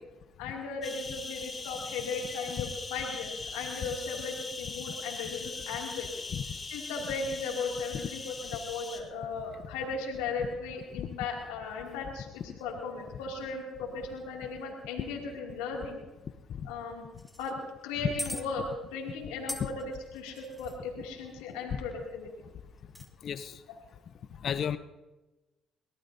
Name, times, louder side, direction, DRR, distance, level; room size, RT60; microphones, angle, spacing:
voice 1, 0.4-6.1 6.7-16.0 16.6-17.0 17.4-17.6 17.8-18.6 18.9-22.3, left 4 dB, 90° left, -1 dB, 2.6 m, -37 dB
sound 1, 0.8-9.0, left 4 dB, 35° left, 3.5 m, -41 dB
sound 2, 17.2-17.5 18.2-18.4 19.5-20.8 22.8-23.1, left 1 dB, 5° left, 1.9 m, -40 dB
voice 2, 24.4-24.8, left 8 dB, 60° left, 12 dB, 0.8 m, -31 dB
23.0 x 18.0 x 2.7 m, 1.1 s
supercardioid pair, 60°, 0 cm